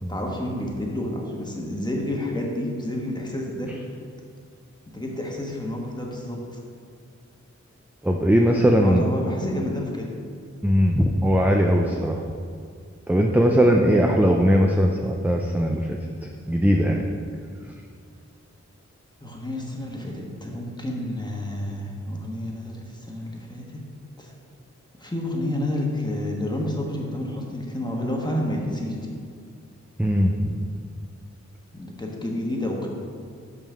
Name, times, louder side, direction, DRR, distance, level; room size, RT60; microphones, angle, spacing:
voice 1, 0.1-3.7 4.9-6.6 8.8-10.1 19.2-23.8 24.2-24.3 25.0-29.1 31.7-32.9, left 1 dB, 15° left, -1 dB, 1.2 m, -30 dB
voice 2, 8.0-9.0 10.6-12.2 13.1-15.8 16.5-17.1 30.0-30.6, equal, 5° right, 1 dB, 0.4 m, -19 dB
5.5 x 5.3 x 6.2 m, 2.2 s
wide cardioid pair, 90°, 29 cm